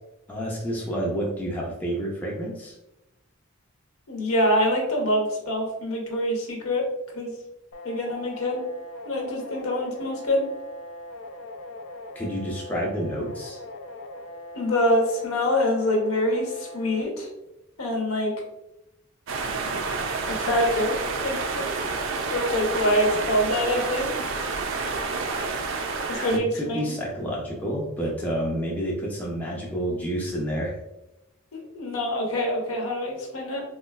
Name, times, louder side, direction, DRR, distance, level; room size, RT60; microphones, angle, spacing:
voice 1, 0.3-2.8 12.1-13.6 26.1-30.8, equal, 10° left, -4 dB, 0.5 m, -29 dB
voice 2, 4.1-6.8 7.1-7.3 7.8-8.6 9.0-10.4 14.5-17.3 17.8-18.3 20.3-21.7 22.1-24.1 26.1-26.9 31.7-33.6, left 1 dB, 85° left, 0 dB, 0.8 m, -25 dB
sound 1, 7.7-17.0, left 1 dB, 65° left, 0.3 m, -40 dB
sound 2, 19.3-26.4, right 4 dB, 65° right, 0.3 m, -29 dB
3.7 x 2.3 x 2.2 m, 0.92 s
head